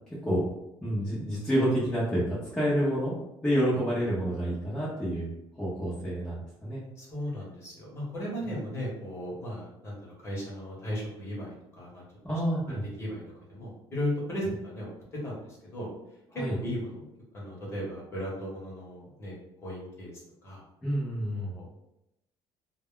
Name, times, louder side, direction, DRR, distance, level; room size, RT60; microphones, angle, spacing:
voice 1, 0.8-3.1 3.4-6.8 12.2-12.8 16.4-16.5 20.8-21.5, equal, 5° left, -10 dB, 0.7 m, -28 dB
voice 2, 7.0-12.0 12.7-13.2 13.5-15.9 16.3-17.1 17.3-19.4 19.6-20.1 20.4-20.6 21.3-21.7, equal, 25° left, -5 dB, 1.0 m, -36 dB
2.2 x 2.0 x 3.6 m, 0.85 s
cardioid pair, 155°, 10 cm